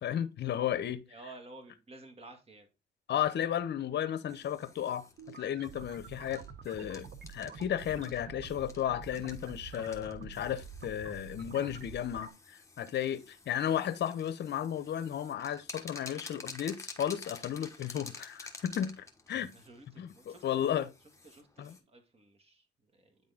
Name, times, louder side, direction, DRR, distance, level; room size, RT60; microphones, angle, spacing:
voice 1, 0.0-1.0 3.1-19.5 20.0-20.9 21.6-21.7, left 10 dB, 60° left, 0.7 m, -34 dB
voice 2, 1.1-2.7 19.5-20.7 21.2-23.2, right 2 dB, 30° right, 1.8 m, -53 dB
sound 1, 4.3-21.8, left 3 dB, 15° left, 1.2 m, -51 dB
sound 2, 5.2-12.3, right 6 dB, 55° right, 0.8 m, -48 dB
9.1 x 3.7 x 3.6 m
cardioid pair, 90°, 20 cm